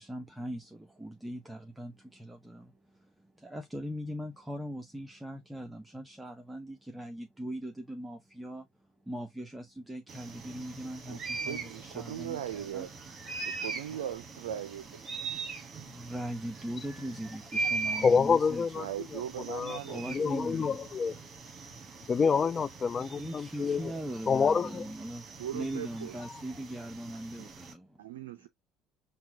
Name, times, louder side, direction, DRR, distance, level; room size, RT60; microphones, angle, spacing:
voice 1, 0.0-8.7 9.0-12.9 15.9-18.7 19.8-20.8 23.2-28.0, right 1 dB, 10° right, 0.7 m, -40 dB
sound 1, 10.1-27.7, right 4 dB, 40° right, 1.2 m, -41 dB
voice 2, 11.1-12.9 13.4-14.8 18.8-20.3 25.4-26.2 27.4-27.5 28.0-28.5, right 10 dB, 75° right, 0.4 m, -39 dB
voice 3, 18.0-18.9 19.5-19.8 20.1-21.2 22.1-23.9 24.3-24.9, left 5 dB, 35° left, 0.3 m, -27 dB
5.7 x 2.3 x 2.8 m
figure-of-eight pair, 60°, 0 cm